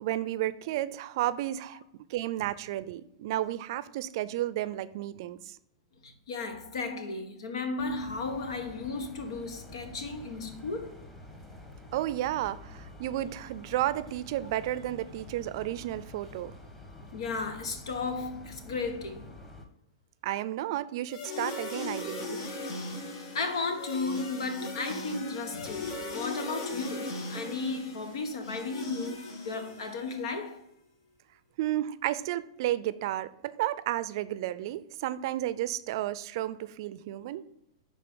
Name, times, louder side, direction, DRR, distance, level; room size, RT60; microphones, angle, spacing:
voice 1, 0.0-1.8 2.1-5.6 11.9-16.5 20.2-22.4 31.6-37.4, right 14 dB, 55° right, 0.5 m, -32 dB
voice 2, 6.0-11.0 17.1-19.3 21.8-21.9 23.0-30.6, left 3 dB, 80° left, 1.5 m, -35 dB
sound 1, 7.8-19.6, left 1 dB, 10° left, 1.3 m, -48 dB
sound 2, 21.1-30.2, left 2 dB, 60° left, 2.1 m, -38 dB
11.0 x 4.2 x 3.8 m
hypercardioid pair, 140°, 3 cm